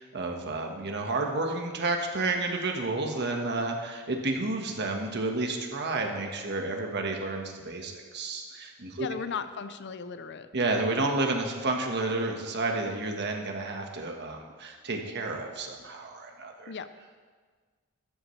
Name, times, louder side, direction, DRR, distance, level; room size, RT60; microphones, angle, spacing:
voice 1, 0.0-9.1 10.5-16.7, right 2 dB, 55° right, 2 dB, 1.5 m, -31 dB
voice 2, 8.9-10.5 16.7-16.9, left 6 dB, 55° left, 11 dB, 0.6 m, -36 dB
14.0 x 12.5 x 3.3 m, 1.5 s
head